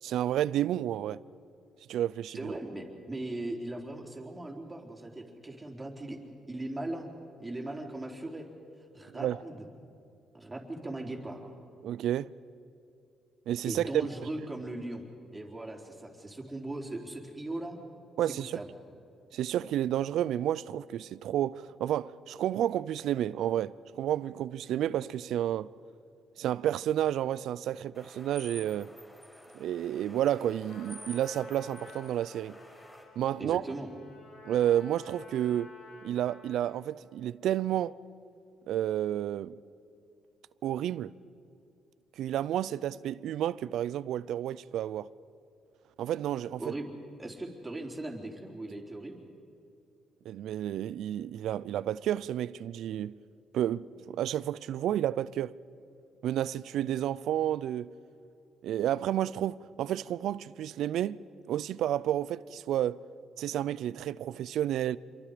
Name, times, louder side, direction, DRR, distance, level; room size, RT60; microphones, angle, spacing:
voice 1, 0.0-1.2 1.9-2.5 9.1-9.4 11.8-12.3 13.5-14.1 18.2-18.6 19.3-25.7 26.4-28.9 29.5-32.6 33.2-33.7 34.5-35.7 36.0-37.9 38.7-39.6 40.6-41.1 42.2-45.1 46.0-46.7 50.3-53.2 53.5-55.5 56.2-57.9 58.6-61.2 61.5-63.0 63.4-65.0, right 11 dB, 80° right, 0.5 m, -31 dB
voice 2, 2.3-6.2 6.5-7.1 7.4-8.5 8.9-9.6 10.3-11.5 13.7-17.8 18.3-18.7 33.4-33.9 46.6-46.9 47.2-49.3, right 2 dB, 15° right, 3.7 m, -39 dB
sound 1, 27.9-33.0, equal, 10° left, 5.6 m, -50 dB
Trumpet, 30.7-36.9, left 3 dB, 70° left, 4.6 m, -52 dB
27.5 x 23.5 x 5.1 m
cardioid pair, 90°, 0 cm